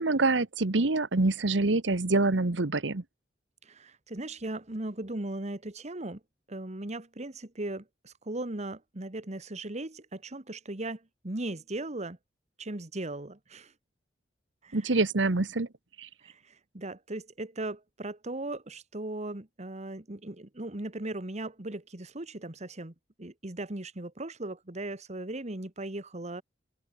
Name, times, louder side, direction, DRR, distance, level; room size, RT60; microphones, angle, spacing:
voice 1, 0.0-3.0 14.7-15.7 16.0-16.1, right 3 dB, 80° right, 1.2 m, -26 dB
voice 2, 3.7-6.2 6.5-11.0 11.2-12.2 12.6-13.7 14.6-14.8 16.2-16.3 16.7-22.9 23.2-26.4, right 2 dB, 40° right, 1.7 m, -38 dB
head